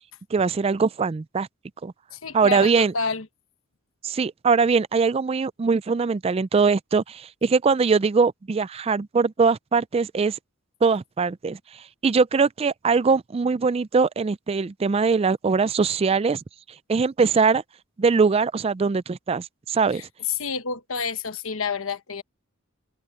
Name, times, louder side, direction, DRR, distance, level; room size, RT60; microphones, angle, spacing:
voice 1, 0.3-1.5 1.8-1.9 2.3-2.9 4.0-10.4 10.8-11.6 12.0-16.4 16.9-17.6 18.0-20.0, right 5 dB, 30° right, 0.3 m, -21 dB
voice 2, 2.1-3.2 19.9-20.0 20.4-22.2, left 4 dB, 70° left, 1.1 m, -29 dB
head